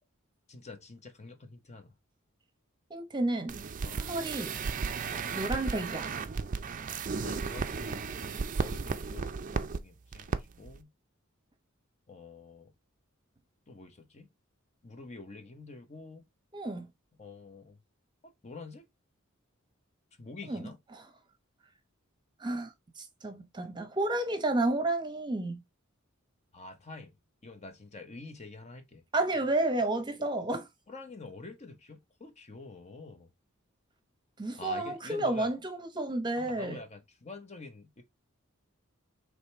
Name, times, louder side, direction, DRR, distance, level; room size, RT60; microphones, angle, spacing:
voice 1, 0.5-1.9 3.8-4.0 5.1-5.3 7.2-10.9 12.1-12.7 13.7-14.3 14.8-16.3 17.2-17.8 18.2-18.9 20.2-20.8 26.5-27.1 27.4-29.0 30.2-30.3 30.9-33.3 34.5-35.5 36.3-38.0, left 3 dB, 35° left, 0.8 m, -47 dB
voice 2, 2.9-3.6 4.0-4.6 5.3-6.1 16.5-16.9 20.5-21.0 22.4-25.6 29.1-30.7 34.4-36.8, right 2 dB, 20° right, 0.8 m, -31 dB
sound 1, 3.5-9.8 10.1-10.4 10.7-10.8, right 5 dB, 40° right, 0.4 m, -34 dB
5.0 x 3.2 x 3.2 m
head